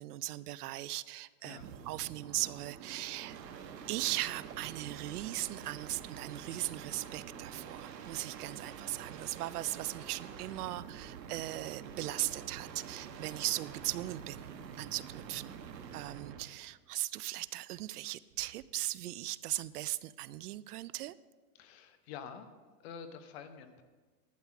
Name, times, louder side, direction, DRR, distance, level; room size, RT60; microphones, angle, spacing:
voice 1, 0.0-3.4 3.9-14.5 14.8-15.6 15.9-21.1, right 16 dB, 70° right, 18 dB, 0.5 m, -38 dB
sound 1, 1.5-16.5 18.3-18.8, right 7 dB, 85° right, 1.4 m, -47 dB
voice 2, 21.5-22.5 22.8-23.8, left 7 dB, 40° left, 8 dB, 1.0 m, -47 dB
11.5 x 9.1 x 4.7 m, 1.3 s
supercardioid pair, 165°, 48 cm